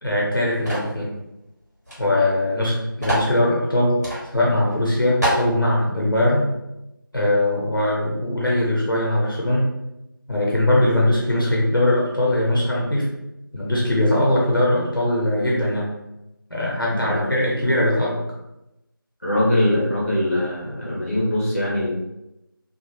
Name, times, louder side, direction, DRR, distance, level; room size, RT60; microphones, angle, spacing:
voice 1, 0.0-1.1 2.0-4.0 4.3-6.5 7.1-9.7 10.3-13.1 13.5-15.9 16.5-18.2, left 1 dB, 70° left, -4 dB, 0.9 m, -20 dB
sound 1, 0.7-1.0 1.9-2.0 2.2-2.3 3.0-3.3 4.0-4.2 4.7-4.8 5.2-5.5, equal, 45° right, 1.5 m, -24 dB
voice 2, 16.9-17.3 19.2-21.9, left 1 dB, 40° left, -7 dB, 1.3 m, -22 dB
2.8 x 2.7 x 2.8 m, 0.89 s
figure-of-eight pair, 175°, 12 cm